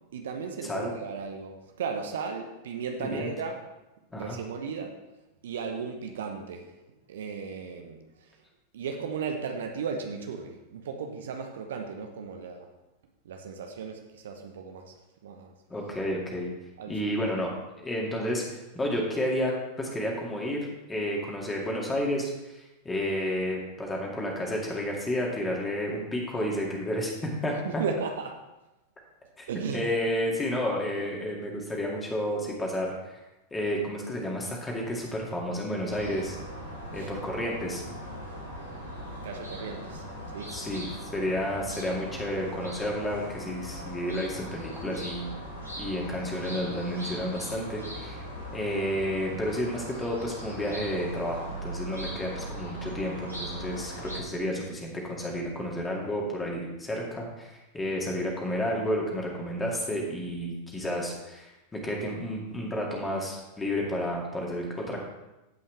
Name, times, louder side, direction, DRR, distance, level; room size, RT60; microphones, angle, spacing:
voice 1, 0.1-3.5 4.1-4.9 5.4-6.7 7.1-8.0 8.7-12.7 13.2-14.9 15.2-15.5 16.8-16.9 27.6-28.3 29.5-29.8 36.9-37.1 39.2-40.0 40.3-40.5 57.8-57.9, right 5 dB, 60° right, 4 dB, 0.9 m, -35 dB
voice 2, 15.7-16.5 16.9-17.5 17.8-19.5 19.8-27.8 29.4-29.5 29.7-33.2 33.5-36.4 36.9-37.8 40.5-45.3 45.8-48.2 48.5-65.0, equal, 15° left, -2 dB, 2.3 m, -31 dB
sound 1, 35.9-54.2, equal, 85° left, 2.5 m, -39 dB
15.5 x 5.6 x 3.4 m, 0.98 s
figure-of-eight pair, 90°, 0 cm